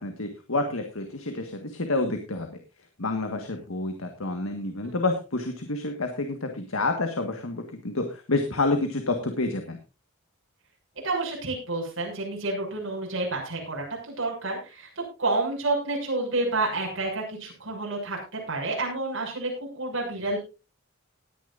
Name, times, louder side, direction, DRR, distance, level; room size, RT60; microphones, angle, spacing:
voice 1, 0.0-2.6 3.0-9.8, left 2 dB, 80° left, 6 dB, 1.7 m, -29 dB
voice 2, 11.0-20.4, right 2 dB, 65° right, -2 dB, 6.8 m, -29 dB
19.0 x 10.5 x 2.6 m, 0.31 s
head